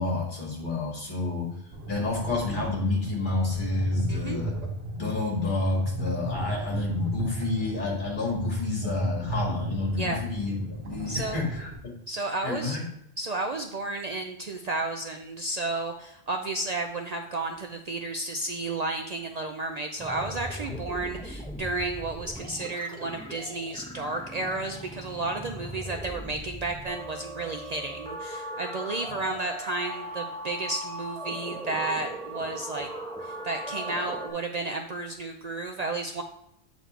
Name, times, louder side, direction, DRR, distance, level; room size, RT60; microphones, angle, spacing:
voice 1, 0.0-1.5 1.9-4.5 4.9-11.9 12.4-12.8 20.7-20.8 29.2-29.3, left 3 dB, 50° left, -3 dB, 2.2 m, -29 dB
sound 1, 1.7-11.7, right 1 dB, 75° right, 1.4 m, -35 dB
voice 2, 4.1-4.4 10.0-10.2 11.1-11.4 12.1-12.8 13.2-32.9 33.2-36.2, right 2 dB, 50° right, 4 dB, 0.5 m, -32 dB
sound 2, 20.0-34.3, right 1 dB, 5° left, 1.3 m, -39 dB
8.1 x 4.1 x 4.6 m, 0.77 s
omnidirectional pair, 1.1 m